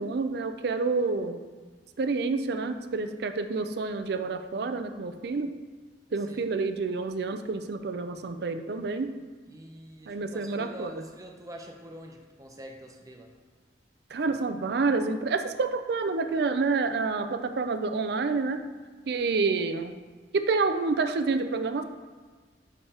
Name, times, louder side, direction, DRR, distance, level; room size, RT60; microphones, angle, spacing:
voice 1, 0.0-1.4 2.0-5.5 6.1-9.1 10.1-10.9 14.1-18.6 19.1-19.9 20.3-21.8, right 4 dB, 60° right, 8 dB, 0.4 m, -28 dB
voice 2, 6.1-6.5 9.4-13.3, right 1 dB, 20° right, 2 dB, 0.7 m, -45 dB
9.9 x 3.4 x 2.9 m, 1.5 s
head